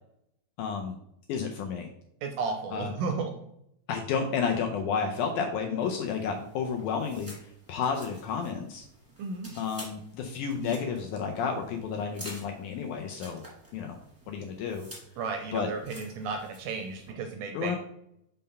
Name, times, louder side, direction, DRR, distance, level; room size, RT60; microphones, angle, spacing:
voice 1, 0.6-1.0 1.3-1.9 2.7-2.9 3.9-8.9 9.6-13.4 13.7-14.0 14.3-14.9 15.5-15.7 17.5-17.8, left 6 dB, 80° left, 3 dB, 1.9 m, -31 dB
voice 2, 2.2-3.3 9.2-9.5 15.2-17.8, right 4 dB, 80° right, 4 dB, 1.9 m, -33 dB
sound 1, 5.8-17.1, equal, 10° right, 0.9 m, -50 dB
5.6 x 3.7 x 5.3 m, 0.77 s
omnidirectional pair, 4.1 m